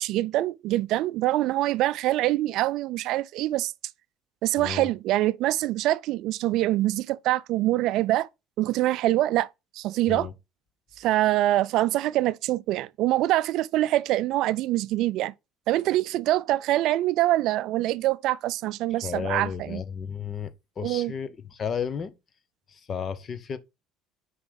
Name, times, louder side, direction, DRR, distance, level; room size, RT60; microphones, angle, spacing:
voice 1, 0.0-3.7 4.4-8.3 8.6-9.5 9.7-10.3 11.0-15.3 15.7-19.8 20.8-21.1, right 15 dB, 65° right, 0.3 m, -24 dB
voice 2, 4.6-4.9 10.1-10.3 19.0-22.1 22.7-23.6, left 7 dB, 40° left, 0.9 m, -33 dB
5.9 x 5.0 x 5.2 m
supercardioid pair, 105°, 0 cm